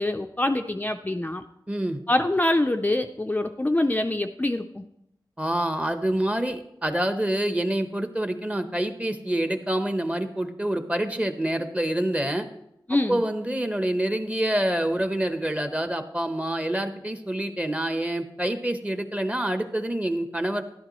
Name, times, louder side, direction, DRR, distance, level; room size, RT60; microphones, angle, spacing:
voice 1, 0.0-1.4 2.1-4.9 12.9-13.2, left 1 dB, 20° left, 5 dB, 0.4 m, -25 dB
voice 2, 1.7-2.0 5.4-12.5 13.1-20.6, right 1 dB, 15° right, 8 dB, 0.9 m, -27 dB
11.5 x 11.5 x 3.1 m, 0.81 s
wide cardioid pair, 75°, 8 cm